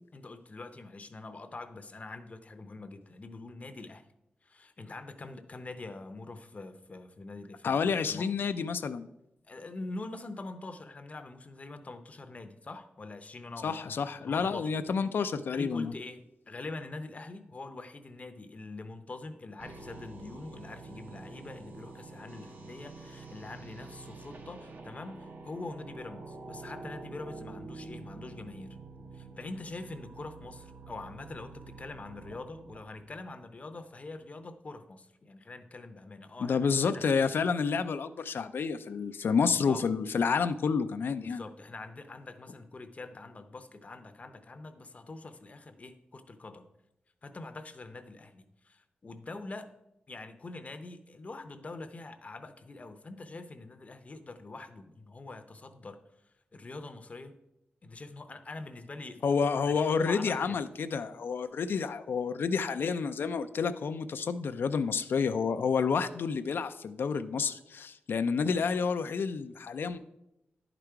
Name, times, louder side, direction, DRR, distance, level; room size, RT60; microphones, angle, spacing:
voice 1, 0.1-4.0 4.4-8.3 9.4-14.0 14.2-14.7 15.5-28.8 29.1-36.6 36.9-37.0 39.4-39.8 41.2-46.6 47.2-49.7 50.1-56.0 56.5-57.3 57.8-59.3 59.6-60.6, left 2 dB, 40° left, 9 dB, 0.7 m, -44 dB
voice 2, 7.6-9.1 13.6-15.9 36.4-41.4 59.2-70.0, left 5 dB, 75° left, 10 dB, 0.4 m, -29 dB
sound 1, 19.6-33.7, right 3 dB, 60° right, 1.0 m, -47 dB
10.5 x 5.0 x 4.6 m, 0.86 s
wide cardioid pair, 105°, 4 cm